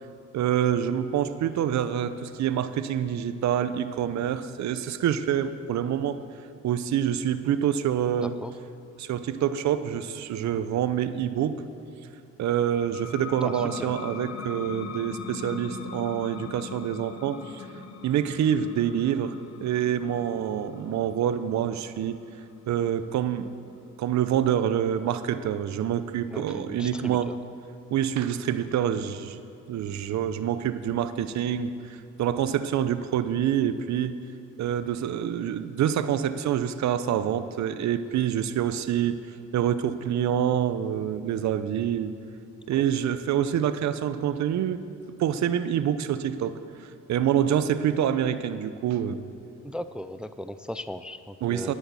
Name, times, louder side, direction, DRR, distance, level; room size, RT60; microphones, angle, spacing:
voice 1, 0.3-6.2 6.6-8.3 9.0-11.6 12.4-17.7 18.0-19.4 19.6-22.2 22.7-23.5 24.0-27.3 27.9-29.4 29.7-31.7 32.2-34.2 34.6-39.2 39.5-42.1 42.7-44.8 45.2-46.6 47.1-49.2 51.4-51.7, right 9 dB, 65° right, 12 dB, 0.7 m, -26 dB
voice 2, 8.2-8.5 13.4-13.9 26.3-27.4 42.8-42.9 49.6-51.7, left 1 dB, 5° right, 12 dB, 0.3 m, -37 dB
sound 1, 12.6-23.9, left 6 dB, 60° left, 1.2 m, -41 dB
10.5 x 9.9 x 7.1 m, 2.5 s
cardioid pair, 90°, 30 cm